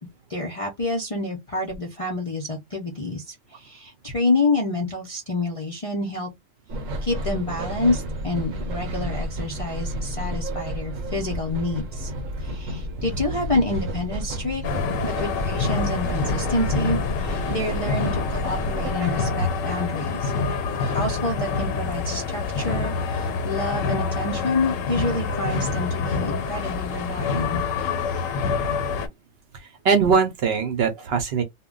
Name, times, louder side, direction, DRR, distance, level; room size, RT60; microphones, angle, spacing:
voice 1, 0.3-6.3 7.0-12.1 12.4-14.6 15.0-20.3 20.7-27.6, left 2 dB, 45° left, 0.4 m, -28 dB
sound 1, 6.7-19.3, equal, 90° right, 1.0 m, -31 dB
sound 2, 14.6-29.1, left 4 dB, 90° left, 1.0 m, -26 dB
voice 2, 29.5-31.4, right 5 dB, 60° right, 0.7 m, -22 dB
2.1 x 2.1 x 3.6 m
omnidirectional pair, 1.3 m